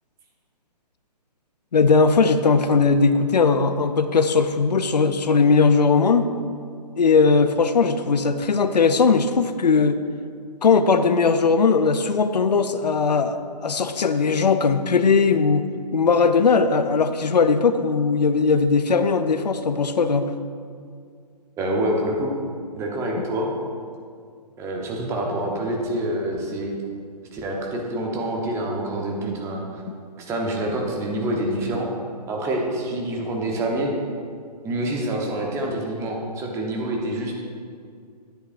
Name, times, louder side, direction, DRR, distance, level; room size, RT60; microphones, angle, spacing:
voice 1, 1.7-6.3 7.0-10.0 10.6-15.6 15.9-20.3, left 4 dB, 75° left, 10 dB, 0.5 m, -19 dB
voice 2, 21.6-22.3 22.8-23.5 24.6-26.7 27.3-29.8 30.2-31.9 32.3-33.9 34.6-37.3, right 1 dB, 15° right, 0 dB, 0.9 m, -26 dB
10.0 x 8.1 x 2.5 m, 2.2 s
figure-of-eight pair, 135°, 21 cm